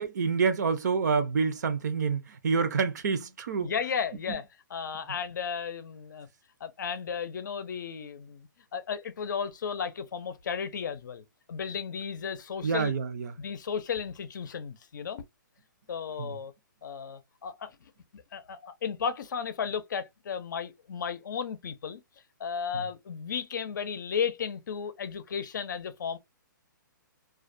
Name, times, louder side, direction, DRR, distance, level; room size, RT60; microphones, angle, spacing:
voice 1, 0.0-3.7 4.3-4.4 12.6-13.3 16.2-16.3 22.7-22.9, right 5 dB, 55° right, 0.5 m, -28 dB
voice 2, 3.6-4.4 4.7-6.3 6.6-12.9 13.4-15.2 15.9-16.5 16.8-22.0 22.4-26.2, left 7 dB, 65° left, 0.5 m, -34 dB
2.4 x 2.1 x 2.5 m
hypercardioid pair, 165°, 11 cm